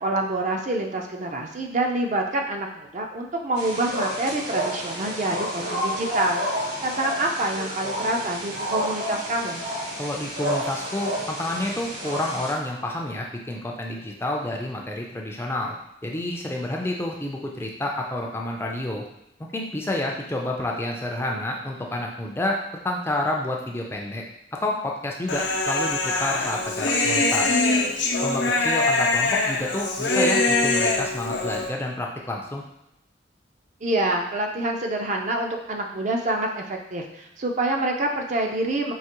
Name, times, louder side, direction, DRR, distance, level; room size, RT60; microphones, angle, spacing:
voice 1, 0.0-6.4 6.8-9.6 33.8-38.9, right 2 dB, 40° right, 2 dB, 0.5 m, -26 dB
sound 1, 3.6-12.5, equal, 75° right, 1.3 m, -30 dB
voice 2, 10.0-15.8 16.0-19.0 19.5-22.6 22.8-24.2 24.6-27.6 28.2-32.6, left 1 dB, 15° left, 0 dB, 0.4 m, -29 dB
Human voice, 25.3-31.7, left 2 dB, 85° left, 0.6 m, -23 dB
4.7 x 2.8 x 2.9 m, 0.85 s
head